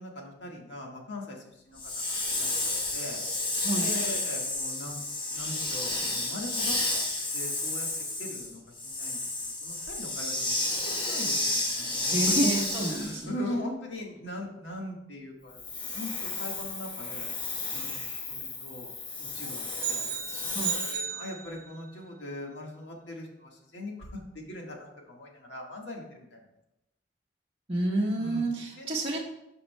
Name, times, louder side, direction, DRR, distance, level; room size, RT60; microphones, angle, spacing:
voice 1, 0.0-3.2 3.7-5.0 5.3-6.8 7.3-7.9 8.2-9.2 9.6-10.6 10.8-12.4 12.9-15.6 15.9-17.3 17.7-17.9 18.3-18.9 19.2-26.4 28.2-28.5 28.7-28.9, left 1 dB, 80° left, 0 dB, 1.5 m, -40 dB
Hiss, 1.8-13.3 15.5-20.9, left 2 dB, 25° left, 1.1 m, -31 dB
voice 2, 12.1-13.3 20.5-20.7 27.7-29.2, right 1 dB, 35° right, -5 dB, 1.1 m, -29 dB
sound 1, 19.8-22.0, right 9 dB, 50° right, 1.3 m, -35 dB
12.0 x 5.4 x 2.2 m, 0.87 s
head